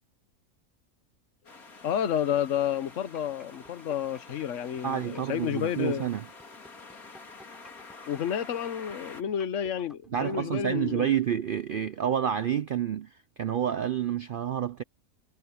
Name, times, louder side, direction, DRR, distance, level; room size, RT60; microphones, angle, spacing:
sound 1, 1.4-9.2, left 3 dB, 85° left, 3.2 m, -48 dB
voice 1, 1.8-6.1 8.1-11.1, left 9 dB, 60° left, 1.3 m, -30 dB
sound 2, 2.9-10.8, equal, ahead, 5.2 m, -54 dB
voice 2, 4.8-6.2 10.1-14.8, right 9 dB, 70° right, 0.5 m, -29 dB
omnidirectional pair, 1.5 m